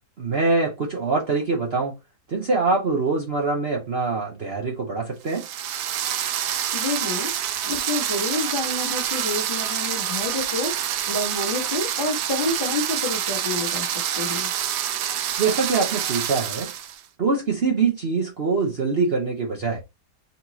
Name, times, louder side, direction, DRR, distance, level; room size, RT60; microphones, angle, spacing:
voice 1, 0.2-1.9 2.3-5.4 15.4-16.7 17.2-19.8, right 4 dB, 45° right, 1.0 m, -24 dB
sound 1, 5.3-17.0, right 10 dB, 90° right, 1.2 m, -27 dB
voice 2, 6.7-7.3 7.6-10.7 11.1-14.5, left 3 dB, 35° left, 1.7 m, -28 dB
4.2 x 4.1 x 2.9 m
omnidirectional pair, 1.7 m